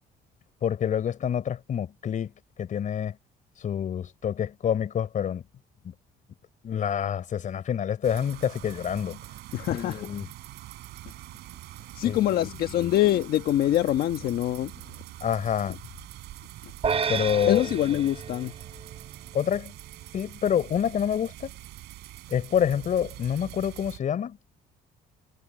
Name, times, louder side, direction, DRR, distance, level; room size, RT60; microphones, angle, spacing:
voice 1, 0.6-2.3 2.6-3.2 3.6-5.4 5.8-5.9 6.6-9.2 9.7-10.3 12.0-12.5 12.8-12.9 15.2-15.8 17.1-17.6 19.3-19.7 20.1-21.5 22.3-24.4, left 8 dB, 50° left, 4.3 m, -27 dB
sound 1, 8.0-24.0, right 16 dB, 80° right, 6.8 m, -44 dB
voice 2, 9.5-10.0 11.9-14.7 17.5-18.5, left 13 dB, 65° left, 1.3 m, -24 dB
sound 2, 16.8-19.3, right 6 dB, 35° right, 5.7 m, -31 dB
cardioid pair, 110°, 17 cm